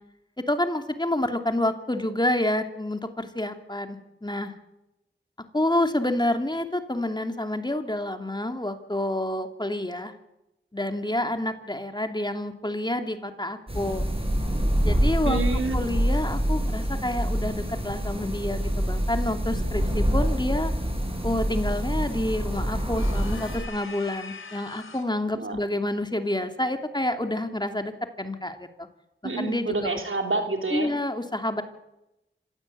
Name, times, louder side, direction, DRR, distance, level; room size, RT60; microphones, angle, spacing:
voice 1, 0.5-4.5 5.5-10.1 10.7-14.1 14.8-15.4 15.7-20.7 21.2-27.9 28.2-28.7 29.4-29.9 30.7-31.6, left 1 dB, 20° left, 6 dB, 2.7 m, -28 dB
sound 1, 13.7-23.6, equal, 25° right, 7.1 m, -26 dB
voice 2, 15.2-15.8 25.3-25.6 29.2-30.9, right 3 dB, 80° right, 5 dB, 3.2 m, -28 dB
sound 2, 22.9-25.2, left 4 dB, 85° left, 2.5 m, -42 dB
26.0 x 16.0 x 8.5 m, 0.92 s
cardioid pair, 40°, 20 cm